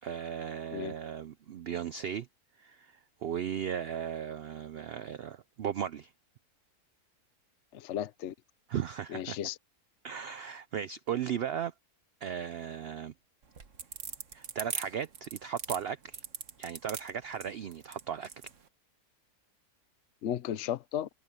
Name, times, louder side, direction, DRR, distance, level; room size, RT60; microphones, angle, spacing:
voice 1, 0.0-2.3 2.6-6.1 8.7-9.4 10.0-11.7 12.2-13.1 14.3-16.2 16.6-18.3, right 8 dB, 80° right, 0.5 m, -36 dB
voice 2, 7.7-8.3 9.1-9.6 20.2-21.1, left 10 dB, 60° left, 0.9 m, -34 dB
sound 1, 13.4-18.6, right 6 dB, 55° right, 1.6 m, -40 dB
open air
omnidirectional pair, 1.6 m